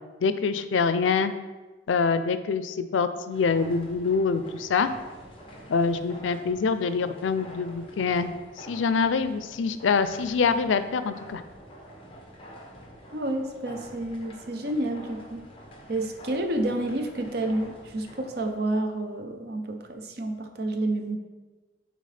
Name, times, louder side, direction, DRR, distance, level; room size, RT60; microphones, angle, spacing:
voice 1, 0.2-1.3 1.9-4.9 5.7-11.4, left 5 dB, 90° left, 12 dB, 0.4 m, -25 dB
sound 1, 3.3-18.6, equal, 30° left, 0.9 m, -47 dB
voice 2, 13.1-15.4 15.9-21.2, right 1 dB, 55° right, 6 dB, 0.7 m, -29 dB
9.3 x 3.9 x 3.3 m, 1.2 s
head